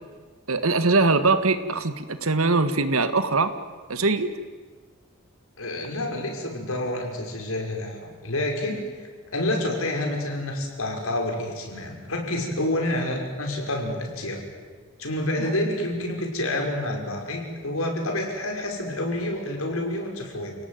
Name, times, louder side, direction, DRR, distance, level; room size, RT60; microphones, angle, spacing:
voice 1, 0.5-3.5 3.9-4.3 15.4-15.5, right 3 dB, 80° right, 11 dB, 1.8 m, -22 dB
voice 2, 5.6-14.4 15.0-20.6, left 1 dB, 80° left, 2 dB, 5.9 m, -28 dB
29.5 x 18.0 x 9.4 m, 1.5 s
head